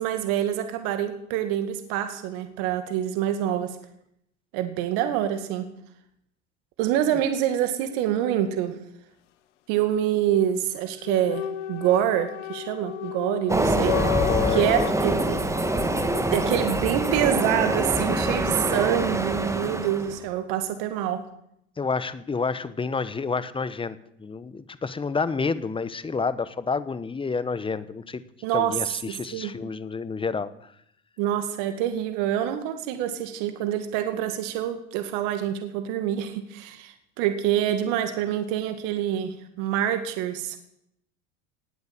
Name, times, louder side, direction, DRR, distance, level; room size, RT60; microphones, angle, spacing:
voice 1, 0.0-3.8 4.5-5.7 6.8-8.8 9.7-14.0 14.5-15.4 16.3-21.2 28.4-28.8 29.3-29.5 31.2-40.6, right 11 dB, 65° right, 8 dB, 2.3 m, -26 dB
sound 1, 11.0-14.9, left 16 dB, 80° left, 1.3 m, -31 dB
Train, 13.5-20.2, right 1 dB, 10° right, 1.9 m, -25 dB
voice 2, 14.1-14.8 16.1-16.4 21.8-28.2 28.5-30.7, left 4 dB, 15° left, 15 dB, 1.1 m, -29 dB
19.0 x 8.0 x 8.9 m, 0.77 s
hypercardioid pair, 100°, 36 cm